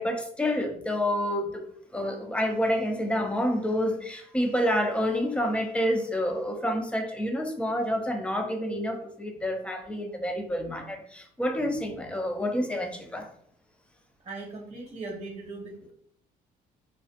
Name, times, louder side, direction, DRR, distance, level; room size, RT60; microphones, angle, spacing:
voice 1, 0.0-1.6 1.9-13.3, equal, 5° left, 4 dB, 0.4 m, -28 dB
voice 2, 14.2-15.9, right 3 dB, 40° right, 0 dB, 0.8 m, -39 dB
2.3 x 2.1 x 2.7 m, 0.65 s
cardioid pair, 110°, 17 cm